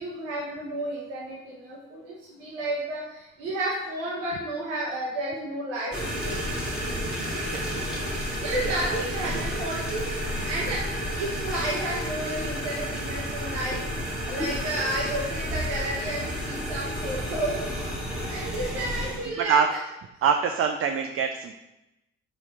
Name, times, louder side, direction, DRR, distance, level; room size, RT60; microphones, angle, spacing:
voice 1, 0.0-6.3 7.2-7.4 8.4-10.0 10.4-17.6 18.3-19.8, right 1 dB, 90° right, -6 dB, 0.6 m, -32 dB
sound 1, 5.9-19.3, equal, ahead, 1.3 m, -31 dB
voice 2, 7.4-7.8 8.1-9.4 19.4-19.7 20.2-21.6, right 7 dB, 40° right, 5 dB, 0.4 m, -27 dB
4.2 x 2.4 x 4.5 m, 0.93 s
hypercardioid pair, 45°, 35 cm